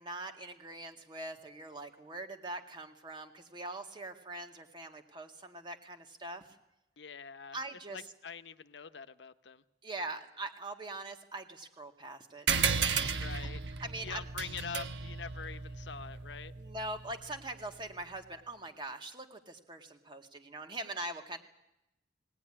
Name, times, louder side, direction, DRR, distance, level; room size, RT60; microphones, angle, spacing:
voice 1, 0.0-6.4 7.5-8.0 9.8-12.5 13.4-13.5 13.8-14.2 16.6-21.4, right 2 dB, 25° right, 5 dB, 2.1 m, -42 dB
voice 2, 7.0-7.6 7.9-9.6 13.2-13.6 14.0-16.5, left 6 dB, 85° left, 12 dB, 0.9 m, -44 dB
sound 1, 12.5-17.4, right 6 dB, 80° right, 1.2 m, -34 dB
20.0 x 18.0 x 10.0 m, 0.86 s
head